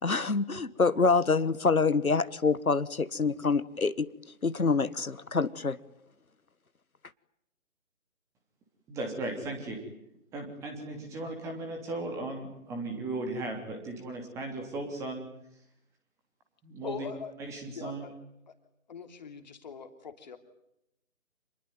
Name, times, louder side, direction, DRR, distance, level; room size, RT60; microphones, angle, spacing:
voice 1, 0.0-4.1 4.4-5.8, left 4 dB, 90° left, 15 dB, 1.6 m, -26 dB
voice 2, 8.9-9.8 10.3-15.2 16.6-17.0 17.5-18.1, right 2 dB, 5° right, 3 dB, 3.1 m, -36 dB
voice 3, 16.8-17.3 17.7-18.1 18.5-18.6 18.9-20.4, left 6 dB, 30° left, 8 dB, 3.0 m, -41 dB
28.0 x 21.0 x 9.3 m, 0.80 s
figure-of-eight pair, 160°, 41 cm